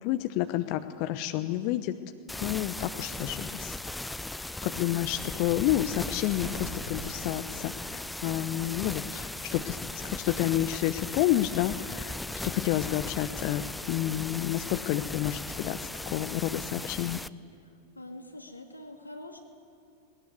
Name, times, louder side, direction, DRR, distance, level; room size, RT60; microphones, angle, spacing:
voice 1, 0.0-1.9 2.4-3.8 4.6-12.1 12.4-17.2, left 14 dB, 45° left, 9 dB, 0.8 m, -30 dB
sound 1, 2.3-17.3, left 2 dB, 5° left, 0.5 m, -38 dB
sound 2, 5.4-7.1, right 3 dB, 55° right, 5.9 m, -43 dB
voice 2, 18.0-19.4, left 1 dB, 85° left, 3 dB, 2.4 m, -44 dB
20.0 x 19.0 x 9.6 m, 2.4 s
figure-of-eight pair, 90°, 0 cm